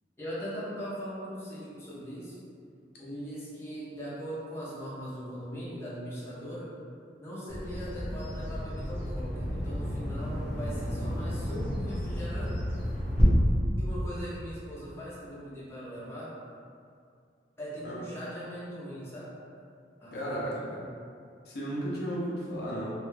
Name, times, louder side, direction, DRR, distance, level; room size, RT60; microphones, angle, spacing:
voice 1, 0.2-2.3 3.0-6.7 7.2-12.6 13.8-16.4 17.6-19.3 20.0-20.8, equal, 15° left, -10 dB, 0.6 m, -40 dB
Bird vocalization bird call bird song, 7.5-13.2, equal, 10° right, 0.9 m, -33 dB
voice 2, 20.1-20.8 21.5-22.9, equal, 60° left, -6 dB, 0.6 m, -34 dB
2.4 x 2.2 x 3.2 m, 2.3 s
head